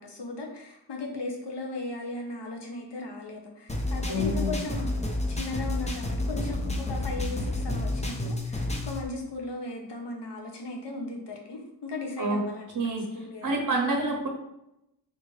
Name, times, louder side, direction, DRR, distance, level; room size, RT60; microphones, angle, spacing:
voice 1, 0.0-12.7 13.1-13.7, left 2 dB, 70° left, 1 dB, 0.8 m, -37 dB
sound 1, 3.7-9.0, left 1 dB, 15° left, 0.4 m, -30 dB
voice 2, 4.1-4.6 12.2-12.4 12.7-13.1 13.4-14.3, right 1 dB, 45° right, 1 dB, 0.7 m, -27 dB
3.7 x 2.5 x 3.1 m, 0.83 s
wide cardioid pair, 80°, 44 cm